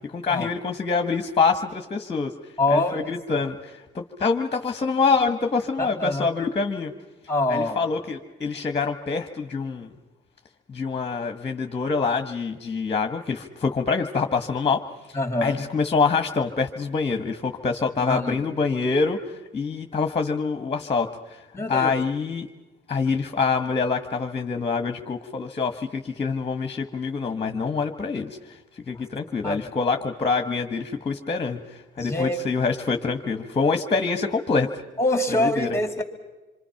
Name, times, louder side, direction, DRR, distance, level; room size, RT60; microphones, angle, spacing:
voice 1, 0.0-2.3 2.7-6.9 7.5-9.9 10.7-14.8 15.4-21.4 21.7-22.5 22.9-28.4 28.9-31.6 32.0-34.7 35.4-35.7, left 4 dB, 30° left, 5 dB, 1.4 m, -25 dB
voice 2, 2.6-3.5 5.8-6.3 7.3-7.8 15.1-15.6 18.0-18.4 21.5-21.9 28.9-29.0 29.4-29.7 32.0-32.4 35.0-36.0, left 1 dB, 15° left, 5 dB, 2.9 m, -25 dB
26.5 x 24.5 x 5.8 m, 1.1 s
cardioid pair, 90°, 20 cm